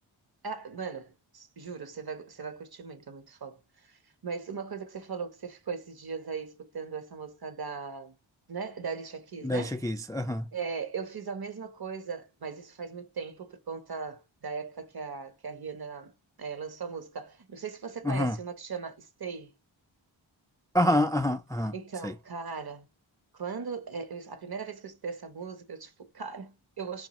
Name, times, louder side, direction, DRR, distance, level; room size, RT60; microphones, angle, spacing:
voice 1, 0.4-8.1 8.5-9.8 10.5-16.1 16.4-19.5 21.7-22.9 23.3-27.1, right 5 dB, 50° right, 1.0 m, -38 dB
voice 2, 9.4-10.5 18.0-18.4 20.7-21.7 22.0-22.1, left 1 dB, 10° left, 0.3 m, -27 dB
4.4 x 2.5 x 3.0 m
cardioid pair, 50°, 48 cm